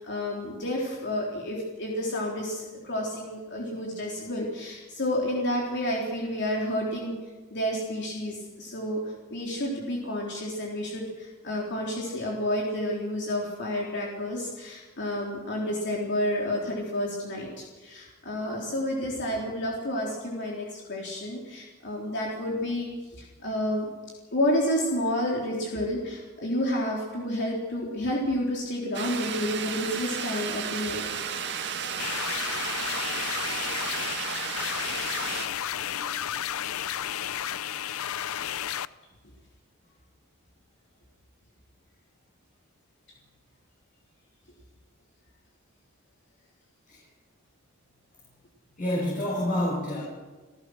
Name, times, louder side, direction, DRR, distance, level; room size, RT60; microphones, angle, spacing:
voice 1, 0.0-7.2 7.5-9.0 9.3-23.9 24.3-31.1, left 1 dB, 55° left, -2 dB, 3.7 m, -30 dB
sound 1, 28.9-35.5, right 7 dB, 55° right, 2.1 m, -33 dB
sound 2, 32.0-38.9, left 10 dB, 75° left, 0.6 m, -32 dB
voice 2, 33.9-34.7 35.8-36.4 46.9-47.0 48.8-50.0, left 1 dB, 40° left, -5 dB, 7.1 m, -31 dB
28.5 x 15.0 x 6.4 m, 1.3 s
head